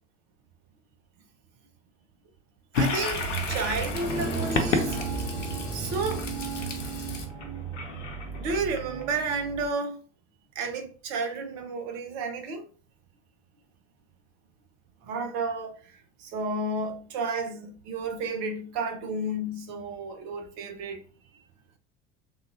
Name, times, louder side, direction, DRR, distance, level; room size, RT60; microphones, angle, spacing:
Toilet flush, 2.7-9.3, left 3 dB, 75° left, 0.7 m, -31 dB
voice 1, 2.7-5.0 5.7-6.4 7.0-7.5 8.4-10.0 10.5-12.6 15.0-15.9 16.2-21.1, right 3 dB, 45° right, 0.7 m, -32 dB
sound 1, 3.1-9.7, right 6 dB, 5° right, 0.7 m, -35 dB
3.5 x 2.3 x 2.6 m
figure-of-eight pair, 70°, 38 cm